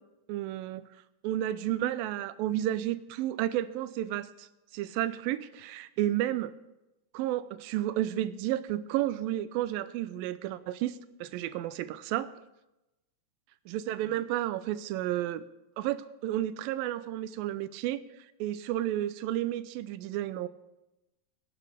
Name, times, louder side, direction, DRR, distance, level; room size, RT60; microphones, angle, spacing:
voice 1, 0.3-0.8 1.2-4.5 4.7-6.5 7.1-12.3 13.7-15.4 15.8-18.0 18.4-20.5, right 13 dB, 80° right, 14 dB, 2.2 m, -32 dB
26.5 x 10.5 x 3.5 m, 0.96 s
omnidirectional pair, 4.6 m